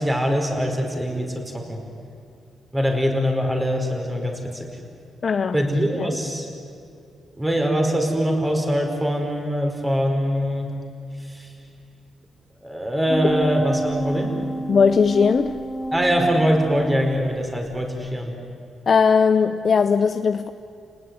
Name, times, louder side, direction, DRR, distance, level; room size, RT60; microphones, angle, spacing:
voice 1, 0.0-1.8 2.7-4.7 5.5-6.5 7.4-10.8 11.2-11.5 12.6-14.4 15.9-18.3, equal, 10° right, 3 dB, 5.2 m, -23 dB
voice 2, 5.2-5.6 6.0-6.1 14.7-15.6 18.9-20.5, left 5 dB, 45° left, 8 dB, 0.8 m, -18 dB
sound 1, 13.1-17.7 18.0-18.1, right 1 dB, 15° left, 2.8 m, -30 dB
30.0 x 19.0 x 9.8 m, 2.5 s
cardioid pair, 95°, 0 cm